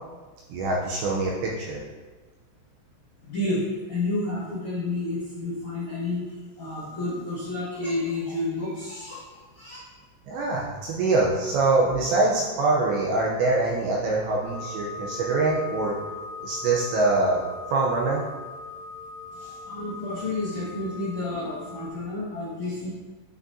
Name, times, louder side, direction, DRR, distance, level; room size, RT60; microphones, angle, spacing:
voice 1, 0.5-1.8 10.3-16.0 16.4-17.4 17.7-18.2, right 3 dB, 80° right, -3 dB, 2.7 m, -24 dB
voice 2, 3.2-9.2 9.5-9.8 19.3-22.9, left 2 dB, 60° left, -10 dB, 1.9 m, -30 dB
sound 1, 14.4-21.9, left 4 dB, 60° right, 1.8 m, -40 dB
8.9 x 6.0 x 2.7 m, 1.3 s
omnidirectional pair, 5.7 m